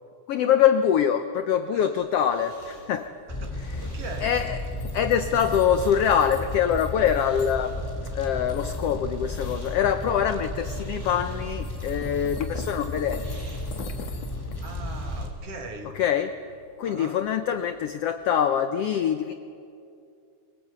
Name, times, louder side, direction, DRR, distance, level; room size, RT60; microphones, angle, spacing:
voice 1, 0.3-3.1 3.6-3.9 4.2-4.6 4.9-7.8 8.1-13.3 15.9-16.4 16.8-19.3, left 9 dB, 80° left, 9 dB, 1.3 m, -24 dB
voice 2, 1.7-2.0 3.3-4.3 14.6-16.0 16.8-17.2, right 3 dB, 50° right, 4 dB, 2.7 m, -40 dB
sound 1, 1.7-15.6, right 2 dB, 80° right, 7.2 m, -52 dB
sound 2, 2.0-18.4, left 6 dB, 55° left, 2.4 m, -47 dB
Fire, 3.3-15.3, left 1 dB, 5° left, 2.6 m, -33 dB
24.0 x 21.5 x 8.3 m, 2.5 s
omnidirectional pair, 3.7 m